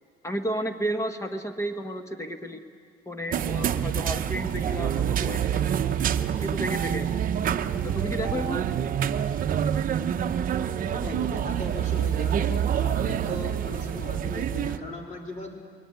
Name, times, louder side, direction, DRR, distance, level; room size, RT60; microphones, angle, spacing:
voice 1, 0.2-2.6 3.1-5.8 6.4-7.1 7.8-8.7, equal, 15° left, 7 dB, 1.3 m, -32 dB
sound 1, 3.3-14.8, right 9 dB, 45° right, 0.8 m, -27 dB
voice 2, 10.8-15.5, left 1 dB, 40° left, 1 dB, 3.7 m, -38 dB
21.5 x 18.5 x 9.4 m, 2.2 s
cardioid pair, 120°, 19 cm